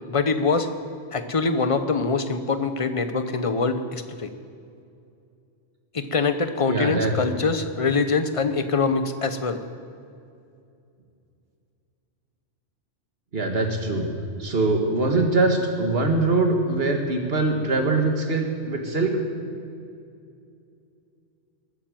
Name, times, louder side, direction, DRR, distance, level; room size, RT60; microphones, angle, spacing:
voice 1, 0.1-0.7 1.1-4.3 5.9-9.6, left 4 dB, 30° left, 9 dB, 0.8 m, -24 dB
voice 2, 6.7-7.1 13.3-14.1 14.4-19.2, right 2 dB, 55° right, 3 dB, 2.0 m, -23 dB
21.0 x 9.0 x 7.7 m, 2.5 s
omnidirectional pair, 1.3 m